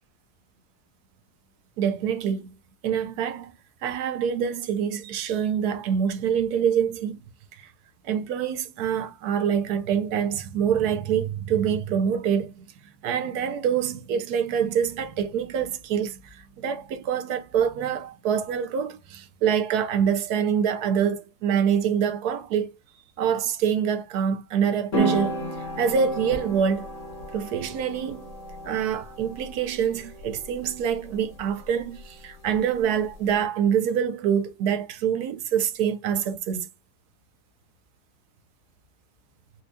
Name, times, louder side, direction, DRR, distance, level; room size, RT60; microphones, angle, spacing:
voice 1, 1.8-2.5 2.8-3.5 3.8-7.2 7.6-7.7 8.0-12.6 13.0-22.7 23.2-25.4 25.8-26.9 27.3-28.2 28.6-36.7, right 8 dB, 75° right, 1.1 m, -25 dB
sound 1, 24.9-33.4, right 2 dB, 50° left, 1.5 m, -34 dB
4.3 x 2.3 x 2.6 m
omnidirectional pair, 1.7 m